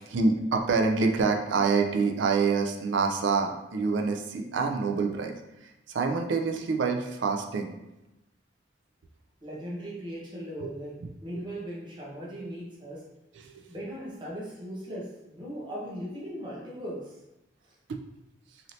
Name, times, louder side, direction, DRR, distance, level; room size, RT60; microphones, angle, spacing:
voice 1, 0.1-5.4 5.9-7.7 10.6-10.7 11.3-11.4 13.4-13.5 17.9-18.0, right 4 dB, 70° right, 4 dB, 0.4 m, -26 dB
voice 2, 9.4-13.0 13.7-17.2, equal, 25° right, -5 dB, 0.8 m, -38 dB
3.1 x 2.7 x 2.6 m, 0.96 s
head